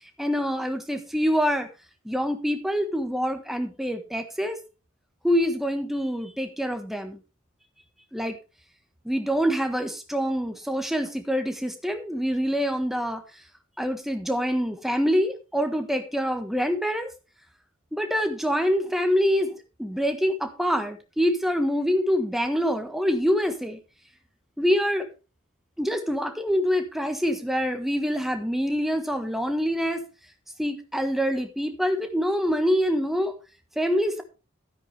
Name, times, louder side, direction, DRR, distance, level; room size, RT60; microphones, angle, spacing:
voice 1, 0.2-1.7 2.0-4.6 5.2-7.2 8.1-8.4 9.0-13.2 13.8-17.1 17.9-23.8 24.6-25.1 25.8-30.0 30.6-33.3 33.7-34.2, equal, ahead, 6 dB, 1.4 m, -25 dB
12.5 x 9.8 x 3.4 m, 0.31 s
head